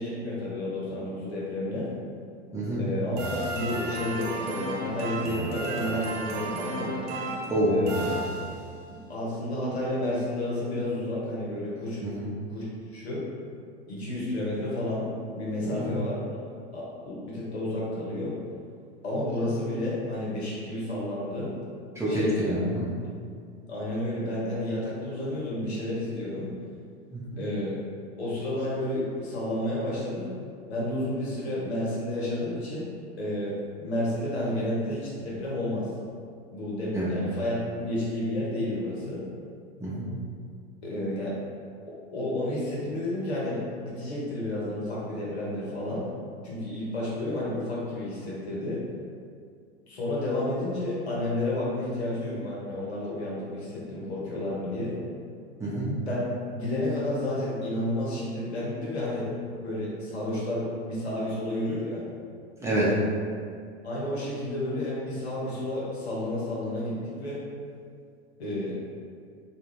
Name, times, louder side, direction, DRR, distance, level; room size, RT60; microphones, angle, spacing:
voice 1, 0.0-1.9 2.8-7.0 7.7-8.1 8.9-12.0 12.5-13.2 13.9-15.1 15.3-16.2 16.7-18.3 19.0-21.5 22.1-22.4 23.7-26.5 27.4-27.8 28.2-30.3 30.7-35.9 36.5-39.2 40.8-41.4 42.1-46.1 46.4-48.8 49.9-55.0 56.0-56.2 56.5-59.3 59.6-62.0 63.8-67.4 68.4-68.8, left 1 dB, 85° left, -6 dB, 0.9 m, -31 dB
voice 2, 2.5-2.8 7.5-7.7 12.0-12.2 15.6-15.9 22.0-22.9 27.1-27.2 36.9-37.1 39.8-40.1 55.6-55.9 62.6-62.9, right 1 dB, 10° right, -9 dB, 0.8 m, -27 dB
sound 1, 3.2-8.9, right 2 dB, 45° right, 0.5 m, -33 dB
2.4 x 2.3 x 3.1 m, 2.2 s
hypercardioid pair, 85°, 32 cm